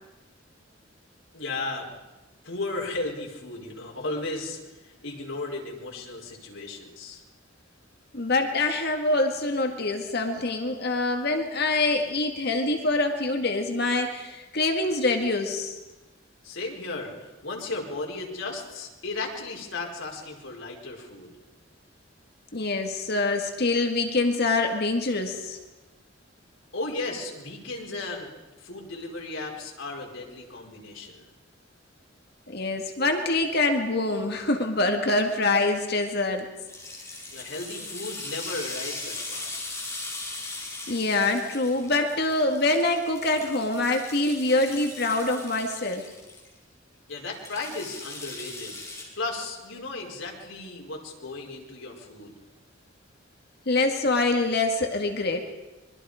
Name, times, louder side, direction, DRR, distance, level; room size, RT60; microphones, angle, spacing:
voice 1, 1.3-1.9 2.4-7.2 16.4-21.3 26.7-31.3 37.3-39.6 47.1-48.8 49.2-52.3, left 2 dB, 80° left, -1 dB, 4.8 m, -35 dB
voice 2, 8.1-15.8 22.5-25.6 32.5-36.5 40.9-46.1 53.7-55.4, left 2 dB, 55° left, 4 dB, 2.0 m, -25 dB
sound 1, 36.7-46.5 47.3-49.0, left 2 dB, 15° left, 5.8 m, -39 dB
25.5 x 22.5 x 5.1 m, 1.1 s
head